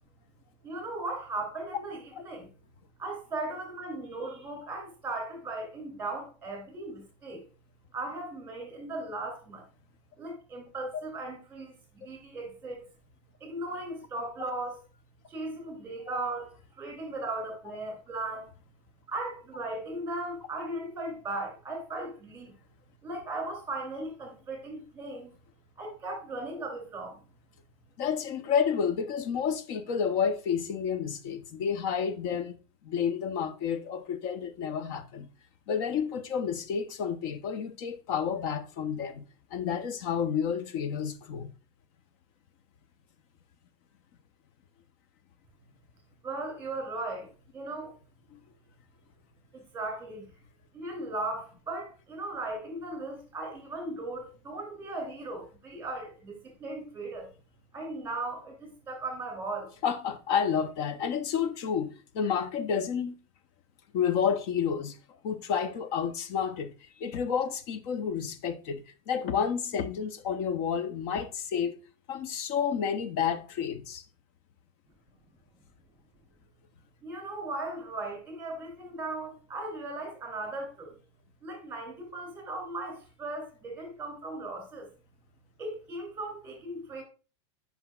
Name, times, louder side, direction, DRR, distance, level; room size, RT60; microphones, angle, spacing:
voice 1, 0.6-2.5 3.0-7.5 7.9-9.6 10.2-12.9 13.4-14.8 15.3-18.5 19.1-22.5 23.0-25.3 25.8-27.2 46.2-47.9 49.5-50.2 50.7-57.3 57.7-59.7 77.0-81.0 81.4-84.9 85.6-87.0, right 2 dB, 15° right, 2.8 m, -37 dB
voice 2, 28.0-35.3 35.7-39.2 39.5-41.5 48.3-48.4 59.8-63.2 63.9-65.0 65.2-71.8 72.1-74.0, left 7 dB, 50° left, 0.8 m, -30 dB
7.7 x 5.7 x 2.3 m
supercardioid pair, 150°, 15 cm